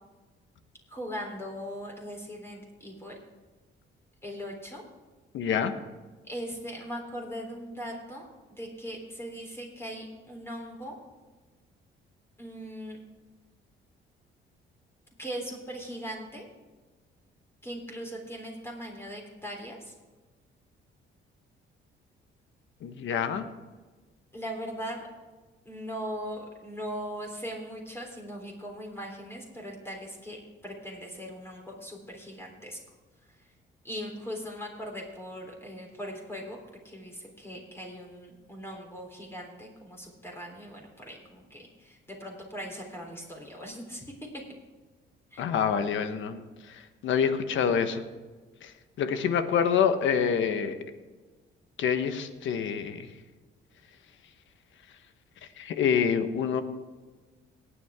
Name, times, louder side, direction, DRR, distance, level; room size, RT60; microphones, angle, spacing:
voice 1, 0.9-3.2 4.2-4.8 6.3-8.3 8.6-11.0 12.4-13.0 15.2-16.5 17.6-19.9 24.3-25.1 25.7-32.8 33.8-36.6 36.8-44.0 45.3-45.4, equal, 10° left, -1 dB, 3.5 m, -39 dB
voice 2, 5.3-5.7 22.8-23.4 45.4-46.4 47.0-48.0 48.6-48.7 49.0-50.8 51.8-53.1 55.6-56.6, left 7 dB, 75° left, 9 dB, 1.2 m, -26 dB
18.5 x 8.6 x 3.7 m, 1.3 s
cardioid pair, 90°, 20 cm